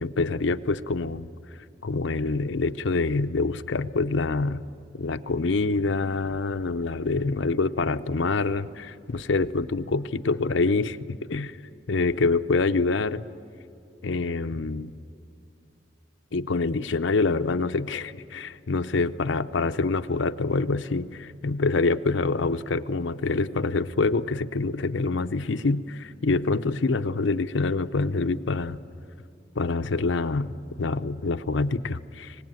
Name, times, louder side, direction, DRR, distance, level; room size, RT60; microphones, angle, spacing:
voice 1, 0.0-1.3 1.8-4.6 5.0-11.6 11.9-13.2 14.0-14.9 16.3-28.8 29.6-30.5 30.8-32.4, left 3 dB, 85° left, 11 dB, 0.7 m, -26 dB
25.0 x 19.0 x 9.1 m, 2.7 s
head